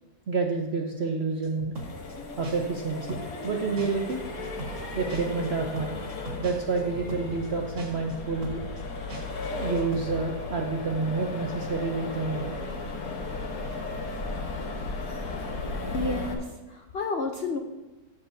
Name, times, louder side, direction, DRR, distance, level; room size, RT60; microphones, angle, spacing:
voice 1, 0.3-1.7 2.4-4.2 4.9-6.1 6.4-8.6 9.5-12.5, right 4 dB, 60° right, 2 dB, 0.6 m, -29 dB
sound 1, 1.4-2.1 2.4-2.8 3.1-3.5 3.8-4.1 4.4-4.8 5.1-7.5 7.8-8.1 8.4-8.8 9.1-9.5 9.8-10.0, right 2 dB, 85° right, 2.8 m, -39 dB
Accelerating revving vroom, 1.7-16.3, left 3 dB, 55° left, 1.5 m, -35 dB
voice 2, 15.9-17.6, left 3 dB, 75° left, 4 dB, 0.5 m, -31 dB
14.0 x 7.4 x 2.7 m, 1.2 s
omnidirectional pair, 2.0 m